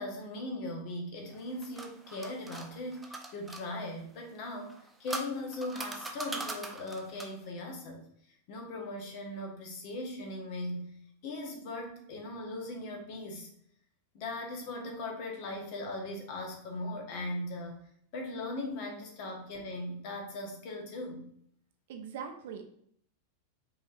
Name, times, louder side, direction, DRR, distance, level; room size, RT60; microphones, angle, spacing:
voice 1, 0.0-4.7 5.0-8.0 8.3-10.9 11.2-13.5 14.1-17.8 18.1-21.2, left 1 dB, 45° left, 1 dB, 1.2 m, -39 dB
sound 1, 1.3-3.7 4.6-7.5, right 2 dB, 10° right, 0.5 m, -41 dB
voice 2, 21.9-22.7, right 7 dB, 55° right, 5 dB, 0.6 m, -41 dB
5.3 x 3.5 x 2.6 m, 0.65 s
figure-of-eight pair, 90°, 0 cm